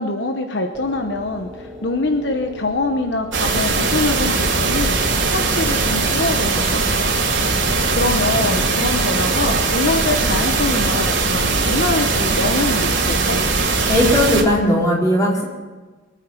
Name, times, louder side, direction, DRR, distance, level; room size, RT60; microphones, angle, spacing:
voice 1, 0.0-7.1 7.9-13.4, left 2 dB, 60° left, 5 dB, 1.0 m, -24 dB
sound 1, 0.7-12.4, left 1 dB, ahead, 3.8 m, -38 dB
sound 2, 3.3-14.4, right 3 dB, 75° right, 2.8 m, -20 dB
voice 2, 13.9-15.4, left 1 dB, 20° left, -4 dB, 4.4 m, -17 dB
24.0 x 9.2 x 5.8 m, 1.3 s
head